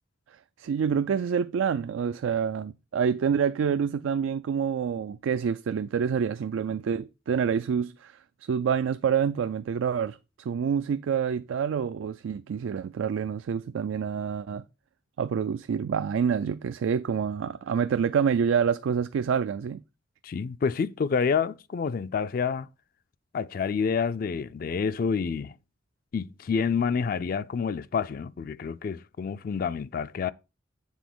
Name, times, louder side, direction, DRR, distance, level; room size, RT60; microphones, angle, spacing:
voice 1, 0.6-14.6 15.2-19.8, right 7 dB, 90° right, 0.3 m, -27 dB
voice 2, 20.2-22.7 23.3-25.5 26.1-30.3, left 6 dB, 50° left, 0.3 m, -28 dB
7.2 x 3.7 x 6.0 m
head